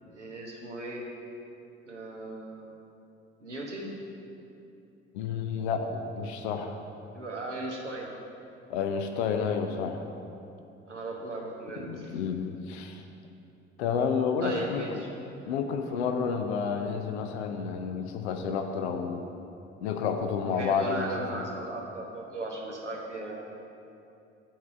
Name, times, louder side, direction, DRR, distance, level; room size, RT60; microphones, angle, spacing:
voice 1, 0.1-1.0 1.9-2.7 3.4-3.9 7.1-8.1 10.9-12.2 14.4-15.1 20.6-23.4, right 2 dB, 90° right, -1 dB, 0.9 m, -37 dB
voice 2, 5.1-6.8 8.7-10.0 11.8-13.0 13.8-15.0 15.5-19.2 19.8-21.5, left 6 dB, 70° left, 5 dB, 0.6 m, -30 dB
7.3 x 4.7 x 6.9 m, 2.7 s
figure-of-eight pair, 50°, 34 cm